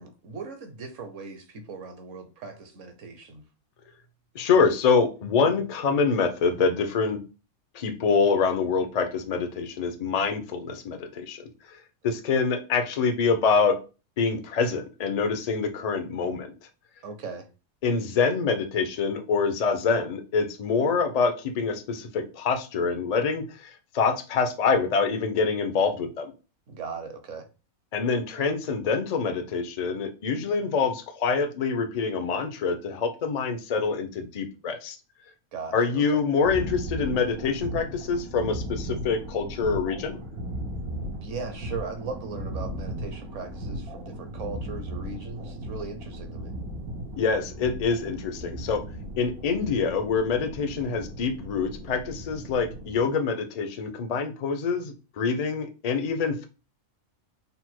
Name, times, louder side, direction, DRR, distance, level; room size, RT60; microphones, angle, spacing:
voice 1, 0.0-3.4 17.0-17.5 26.7-27.5 35.5-36.2 41.2-46.5, right 4 dB, 65° right, 1.0 m, -38 dB
voice 2, 4.3-7.2 7.7-11.8 12.0-13.8 14.2-16.5 17.8-26.3 27.9-35.0 35.7-40.2 47.2-48.8 49.2-56.4, left 5 dB, 60° left, 0.4 m, -25 dB
sound 1, 36.4-53.0, equal, 90° right, 1.4 m, -37 dB
4.0 x 2.1 x 4.4 m
omnidirectional pair, 1.5 m